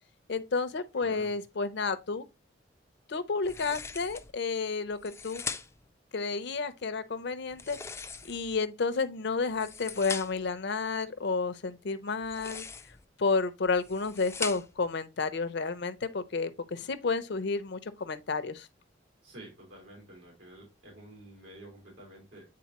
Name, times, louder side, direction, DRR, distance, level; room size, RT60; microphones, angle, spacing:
voice 1, 0.3-2.2 3.1-5.4 6.1-7.8 8.3-12.6 13.2-18.7, left 4 dB, 65° left, 0.6 m, -31 dB
voice 2, 1.0-1.3 19.2-22.5, right 1 dB, 85° right, 3.8 m, -49 dB
sound 1, 3.4-4.3 4.9-5.9 7.5-8.6 9.4-10.5 12.2-13.0 13.7-14.9, left 5 dB, 15° left, 0.4 m, -40 dB
8.5 x 3.8 x 2.9 m
head